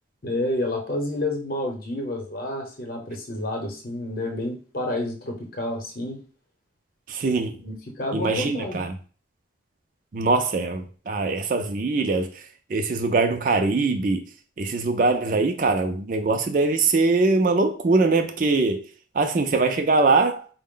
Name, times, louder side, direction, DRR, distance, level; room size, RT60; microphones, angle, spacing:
voice 1, 0.2-6.2 7.6-8.8, left 1 dB, 50° left, 0.8 m, -29 dB
voice 2, 7.1-7.6 8.1-8.9 10.1-12.4 12.7-14.2 14.6-18.8 19.1-20.5, right 3 dB, 45° right, 0.4 m, -22 dB
4.3 x 2.1 x 3.7 m
head